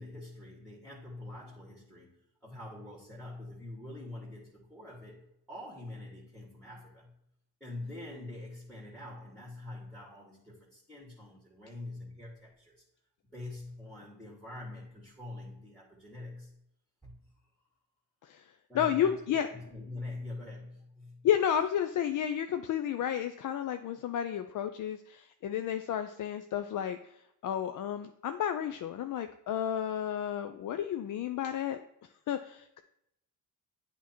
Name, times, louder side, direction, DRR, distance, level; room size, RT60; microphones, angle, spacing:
voice 1, 0.0-7.2 7.6-12.8 13.3-16.6 17.0-17.2 18.7-21.3, left 2 dB, 5° left, -5 dB, 1.7 m, -45 dB
voice 2, 18.7-19.5 21.2-31.8 32.3-32.8, left 9 dB, 50° left, 8 dB, 0.4 m, -32 dB
8.1 x 3.0 x 4.3 m, 0.79 s
supercardioid pair, 60°, 40 cm